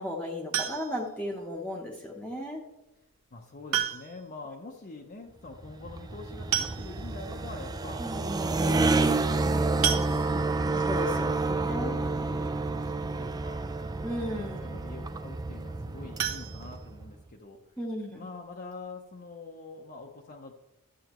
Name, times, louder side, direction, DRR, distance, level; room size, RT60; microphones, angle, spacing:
voice 1, 0.0-2.6 8.0-8.4 10.8-11.9 14.0-14.7 17.8-18.2, left 1 dB, 5° left, -2 dB, 0.8 m, -35 dB
sound 1, 0.5-1.2 2.6-2.7 3.7-4.3 4.6-4.7 5.0-5.1 6.1-6.2 6.5-7.2 7.8-7.9 8.2-8.4 9.8-10.7 16.1-17.4 17.7-17.8 18.3-18.4 18.7-18.8, right 9 dB, 65° right, 0.9 m, -32 dB
voice 2, 3.3-8.0 8.4-10.4 10.7-13.6 14.3-17.6 18.2-20.5, left 3 dB, 45° left, 0 dB, 0.7 m, -45 dB
sound 2, 5.5-17.1, right 3 dB, 15° right, 0.3 m, -29 dB
11.5 x 7.6 x 3.0 m, 0.93 s
head